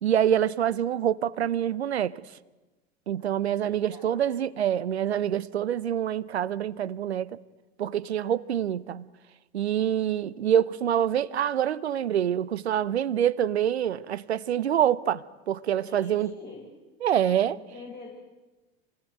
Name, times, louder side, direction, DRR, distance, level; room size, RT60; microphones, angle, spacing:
voice 1, 0.0-2.2 3.1-7.4 7.8-9.1 9.5-16.3 17.0-17.6, right 10 dB, 85° right, 0.8 m, -26 dB
voice 2, 3.2-4.5 9.8-10.0 15.8-16.7 17.5-18.1, left 4 dB, 30° left, 6.6 m, -46 dB
25.5 x 17.5 x 9.2 m
hypercardioid pair, 85°, 32 cm